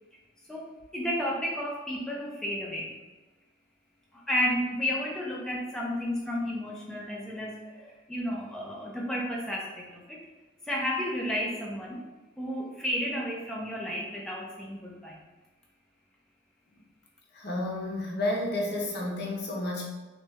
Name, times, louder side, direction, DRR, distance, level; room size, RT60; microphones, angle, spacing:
voice 1, 0.5-2.9 4.1-10.2 10.7-12.0 12.4-15.2, equal, 5° left, -3 dB, 0.5 m, -32 dB
voice 2, 17.3-19.8, left 1 dB, 60° left, -1 dB, 0.8 m, -31 dB
3.1 x 2.9 x 3.4 m, 1.2 s
head